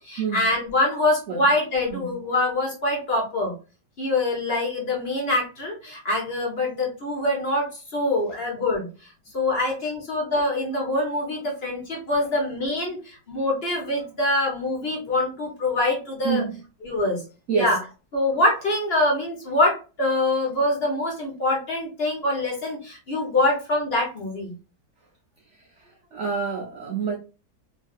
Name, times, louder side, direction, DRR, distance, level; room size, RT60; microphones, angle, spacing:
voice 1, 0.0-3.5 4.0-8.9 9.3-16.5 16.8-17.2 17.5-17.8 18.1-24.5, left 2 dB, 45° left, 1.0 m, -24 dB
voice 2, 26.1-27.1, right 6 dB, 90° right, 0.6 m, -26 dB
3.1 x 2.6 x 2.3 m
omnidirectional pair, 1.8 m